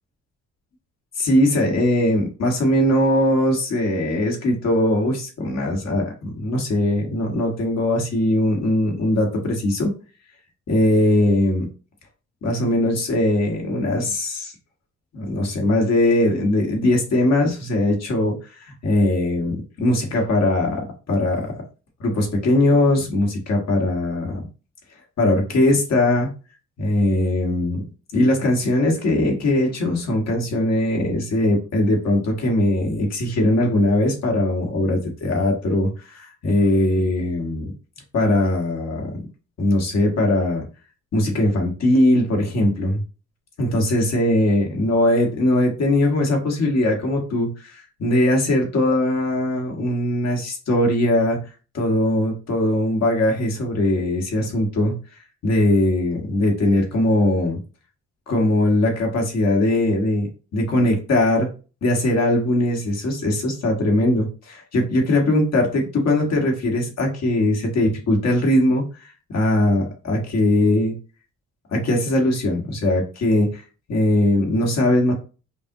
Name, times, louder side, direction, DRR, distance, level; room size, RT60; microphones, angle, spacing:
voice 1, 1.2-9.9 10.7-11.7 12.4-14.5 15.1-21.5 22.0-24.4 25.2-26.3 26.8-27.8 28.1-37.7 38.1-39.1 39.6-40.6 41.1-43.0 43.6-51.4 51.7-54.9 55.4-57.6 58.3-61.5 61.8-70.9 71.7-73.6 73.9-75.1, left 1 dB, 60° left, 1 dB, 1.6 m, -20 dB
5.3 x 2.5 x 2.9 m, 0.34 s
cardioid pair, 90°, 30 cm